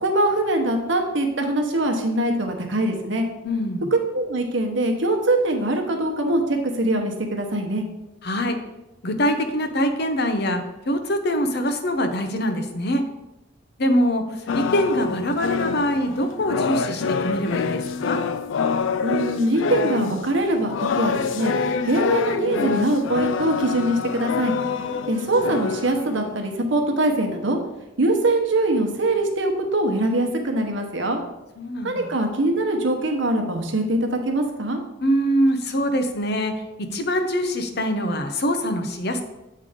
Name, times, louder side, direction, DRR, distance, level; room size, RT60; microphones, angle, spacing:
voice 1, 0.0-3.3 3.9-7.8 19.0-21.5 21.8-24.5 25.1-27.6 28.0-31.2 31.8-34.8, right 1 dB, 65° right, 3 dB, 1.0 m, -23 dB
voice 2, 3.4-3.9 8.2-8.6 9.0-13.0 13.8-18.2 24.6-25.1 31.6-32.1 35.0-36.5 36.8-39.2, equal, 55° left, 7 dB, 0.7 m, -24 dB
sound 1, 14.5-26.5, left 5 dB, 70° left, 0.4 m, -26 dB
8.4 x 3.4 x 5.0 m, 0.96 s
head